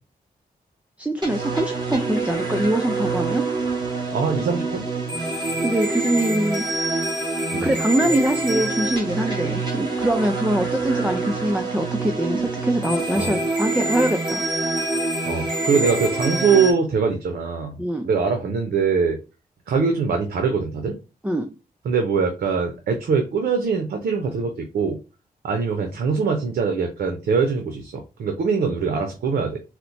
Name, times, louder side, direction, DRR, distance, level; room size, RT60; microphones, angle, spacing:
voice 1, 1.0-3.5 5.6-6.7 7.6-14.4 17.8-18.1 21.2-21.5, right 1 dB, 10° right, 5 dB, 0.4 m, -23 dB
sound 1, 1.2-16.7, right 2 dB, 30° right, 1.3 m, -26 dB
voice 2, 4.1-4.9 7.5-7.7 13.2-13.3 15.3-17.8 18.0-19.2 19.7-20.9 21.8-25.0 25.4-29.6, right 5 dB, 80° right, 4 dB, 0.6 m, -22 dB
4.2 x 2.1 x 2.6 m, 0.30 s
cardioid pair, 80°, 16 cm